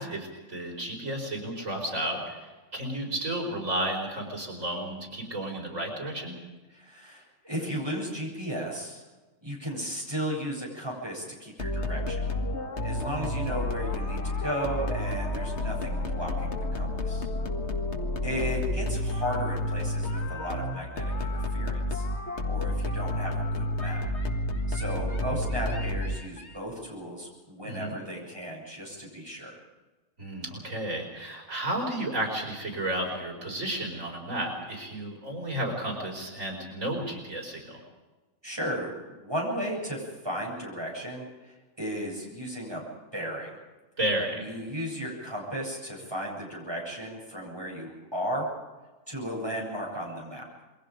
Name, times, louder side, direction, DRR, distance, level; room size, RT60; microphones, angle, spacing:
voice 1, 0.0-6.4 27.6-28.0 30.2-37.8 44.0-44.5, right 1 dB, 85° right, 1 dB, 5.3 m, -32 dB
voice 2, 6.7-9.0 9.4-12.3 12.8-17.3 18.2-22.1 22.4-24.1 24.7-29.5 38.4-42.8 43.1-43.5 44.3-48.5 49.1-50.4, equal, 20° right, -2 dB, 8.1 m, -35 dB
sound 1, 11.6-26.5, left 2 dB, 60° left, 2.0 m, -30 dB
28.0 x 22.5 x 5.2 m, 1.2 s
omnidirectional pair, 1.3 m